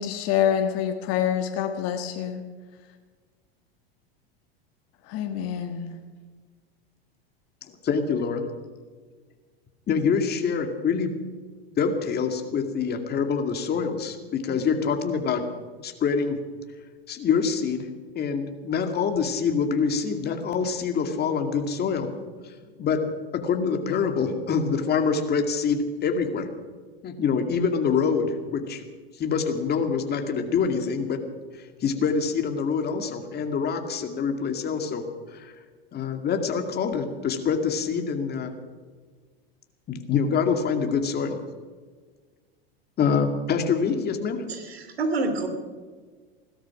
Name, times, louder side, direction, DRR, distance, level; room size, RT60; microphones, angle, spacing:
voice 1, 0.0-2.4 5.1-5.9, left 9 dB, 50° left, 5 dB, 1.5 m, -26 dB
voice 2, 7.8-8.4 9.9-11.2 11.8-15.4 15.8-16.4 17.1-17.9 18.1-22.1 22.4-22.5 22.8-23.0 23.3-26.5 27.0-28.8 29.2-31.2 31.5-35.0 35.3-35.5 35.9-38.5 39.9-41.4 43.0-44.4, left 6 dB, 35° left, 5 dB, 2.3 m, -25 dB
voice 3, 44.5-45.5, right 3 dB, 85° right, 7 dB, 2.8 m, -27 dB
17.0 x 13.0 x 6.0 m, 1.5 s
hypercardioid pair, 100°, 30 cm